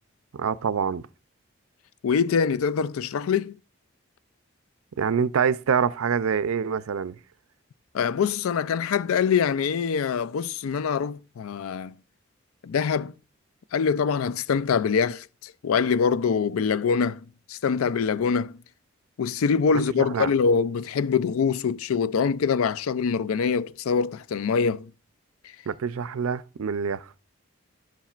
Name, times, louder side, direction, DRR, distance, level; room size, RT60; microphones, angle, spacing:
voice 1, 0.3-1.1 5.0-7.2 20.1-20.3 25.7-27.1, right 6 dB, 85° right, 0.5 m, -25 dB
voice 2, 2.0-3.6 7.9-12.0 12.6-13.1 13.7-17.2 17.5-18.5 19.2-24.9, left 6 dB, 85° left, 0.4 m, -24 dB
11.0 x 7.2 x 2.4 m
head